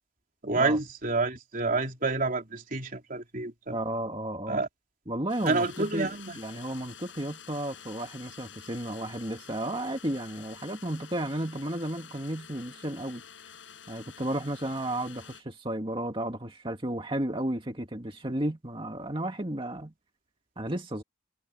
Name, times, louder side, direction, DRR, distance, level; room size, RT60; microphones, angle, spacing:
voice 1, 0.4-3.8 4.5-4.7 5.5-6.4, right 3 dB, 45° right, 3.7 m, -28 dB
voice 2, 3.7-4.6 5.1-13.2 13.9-19.9 20.6-21.0, right 1 dB, 30° right, 2.2 m, -33 dB
sound 1, 5.3-15.4, left 7 dB, 85° left, 5.7 m, -49 dB
head